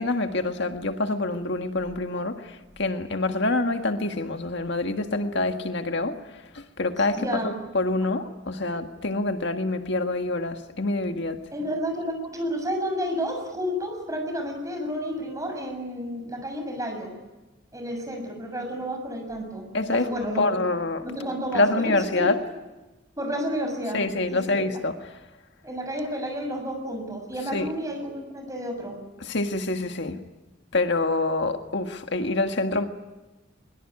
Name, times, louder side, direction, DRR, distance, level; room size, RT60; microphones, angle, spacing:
voice 1, 0.0-2.4 2.8-6.1 6.6-11.4 19.7-20.1 20.4-21.0 21.5-22.3 23.9-24.9 27.5-27.7 29.2-30.2 30.7-32.8, left 2 dB, 65° left, 6 dB, 1.7 m, -26 dB
voice 2, 7.1-7.5 11.5-17.1 17.7-19.7 19.9-20.4 21.0-22.3 23.2-24.0 24.3-24.6 25.6-29.0, equal, 15° right, 4 dB, 6.9 m, -31 dB
23.0 x 22.5 x 9.6 m, 1.1 s
head